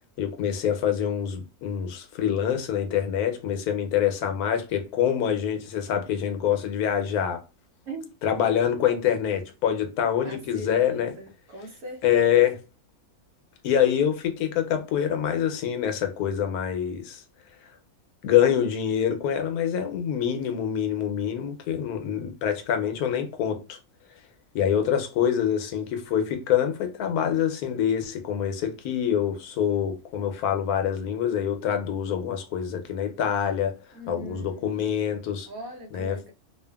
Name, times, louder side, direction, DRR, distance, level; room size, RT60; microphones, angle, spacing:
voice 1, 0.2-7.4 8.2-11.2 12.0-12.6 13.6-17.2 18.2-23.8 24.5-33.7 34.1-35.5 35.9-36.2, left 9 dB, 80° left, 1.1 m, -25 dB
voice 2, 10.2-12.4 33.9-35.0 35.4-36.3, right 1 dB, 70° right, 1.2 m, -40 dB
2.7 x 2.4 x 2.2 m
omnidirectional pair, 1.6 m